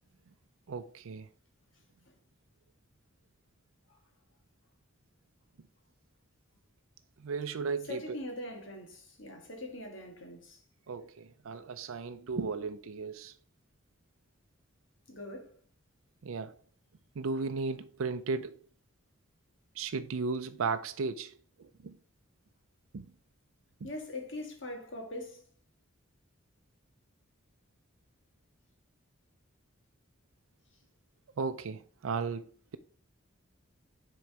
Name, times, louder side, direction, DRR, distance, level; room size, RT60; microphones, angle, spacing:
voice 1, 0.7-1.3 7.2-8.2 10.9-13.3 16.2-16.6 17.2-18.6 19.7-22.0 22.9-23.1 23.8-23.9 31.4-32.4, right 4 dB, 80° right, 0.5 m, -35 dB
voice 2, 7.9-10.6 15.1-15.6 23.8-25.4, left 1 dB, 60° left, 1.7 m, -42 dB
6.3 x 3.9 x 4.6 m
head